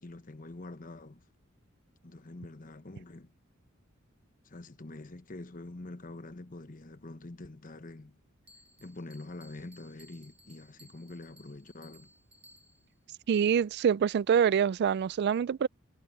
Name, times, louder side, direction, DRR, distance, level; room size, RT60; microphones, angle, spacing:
voice 1, 0.0-1.3 2.0-3.3 4.4-8.2 8.8-12.1, left 2 dB, 40° left, 1.1 m, -45 dB
Bell, 8.5-13.0, equal, 30° right, 1.9 m, -60 dB
voice 2, 13.3-15.7, right 7 dB, 50° right, 0.3 m, -25 dB
head